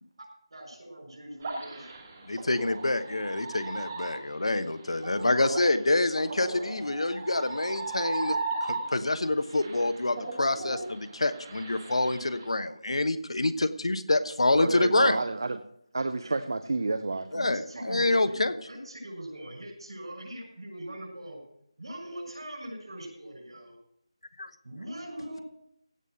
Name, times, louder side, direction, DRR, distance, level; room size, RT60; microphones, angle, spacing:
voice 1, 0.2-1.9 16.2-16.5 17.4-21.4 21.8-23.8 24.6-25.4, right 1 dB, 60° right, 1 dB, 6.2 m, -42 dB
sound 1, 1.4-9.2 9.5-12.4, right 3 dB, 20° right, 1.4 m, -36 dB
voice 2, 2.3-15.2 17.3-18.5 24.4-24.5, left 2 dB, 75° left, 11 dB, 1.1 m, -27 dB
voice 3, 14.6-15.6 15.9-18.0, right 3 dB, 40° right, 12 dB, 0.5 m, -31 dB
16.0 x 5.5 x 7.9 m, 0.74 s
figure-of-eight pair, 175°, 3 cm